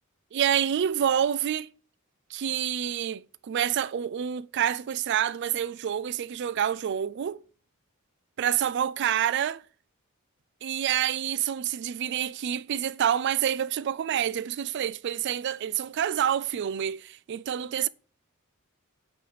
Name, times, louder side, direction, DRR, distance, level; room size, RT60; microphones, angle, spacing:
voice 1, 0.3-1.7 2.3-7.4 8.4-9.6 10.6-17.9, right 9 dB, 55° right, 0.3 m, -27 dB
8.5 x 3.3 x 5.4 m
head